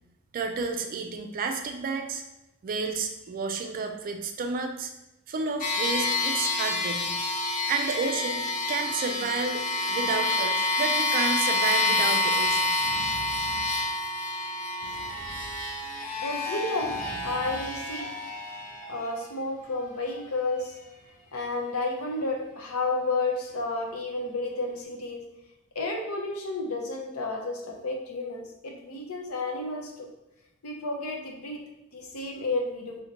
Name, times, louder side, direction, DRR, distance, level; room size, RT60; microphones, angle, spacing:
voice 1, 0.3-2.2 2.6-4.9 5.3-7.2 7.7-8.4 8.7-12.7, right 4 dB, 40° right, 6 dB, 0.3 m, -31 dB
sound 1, 5.6-19.2, left 2 dB, 40° left, 0.5 m, -28 dB
Drum, 12.3-14.2 14.8-16.1 16.8-18.3, left 1 dB, 10° left, 0.9 m, -46 dB
voice 2, 16.2-17.0 17.2-18.1 18.9-20.7 21.3-25.2 25.8-30.1 30.6-31.6 31.9-33.0, left 2 dB, 80° left, 2 dB, 0.6 m, -31 dB
3.8 x 2.1 x 2.8 m, 0.92 s
head